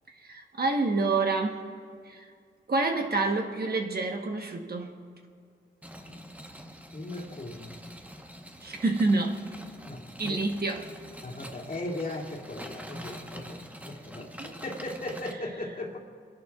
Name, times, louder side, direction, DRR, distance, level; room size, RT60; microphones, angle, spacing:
voice 1, 0.2-1.7 2.1-2.3 2.7-4.9 8.6-9.4 10.2-10.9 14.2-14.6, right 3 dB, 50° right, 3 dB, 1.1 m, -28 dB
sound 1, 5.8-15.3, equal, 5° right, 1.0 m, -45 dB
voice 2, 6.9-7.7 9.8-10.5 11.2-16.0, left 2 dB, 45° left, -2 dB, 2.4 m, -38 dB
28.5 x 11.0 x 2.4 m, 2.1 s
cardioid pair, 60°, 20 cm